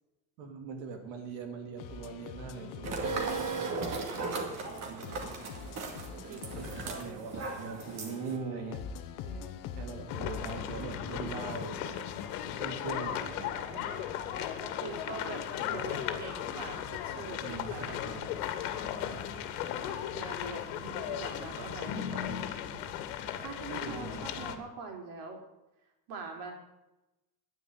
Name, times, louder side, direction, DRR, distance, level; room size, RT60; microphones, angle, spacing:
voice 1, 0.4-4.0 4.8-5.7 6.1-8.8 9.7-12.1 12.5-14.0 15.6-16.1 17.4-18.3 18.8-19.2 19.5-20.0 21.3-21.8 22.1-22.9 23.8-24.6, right 4 dB, 90° right, 4 dB, 3.3 m, -42 dB
sound 1, 1.8-13.7, left 7 dB, 45° left, 1.1 m, -44 dB
voice 2, 2.4-2.9 4.2-4.6 6.2-6.6 6.9-7.1 9.2-9.7 12.1-12.7 13.7-14.1 14.6-18.0 19.2-19.6 20.1-22.6 23.2-25.4 26.1-26.5, right 4 dB, 55° right, 2 dB, 4.1 m, -44 dB
sound 2, 2.8-8.4, right 3 dB, 35° right, 2.3 m, -37 dB
sound 3, 10.1-24.6, left 10 dB, 85° left, 2.0 m, -36 dB
10.5 x 9.9 x 9.2 m, 0.97 s
cardioid pair, 175°, 45 cm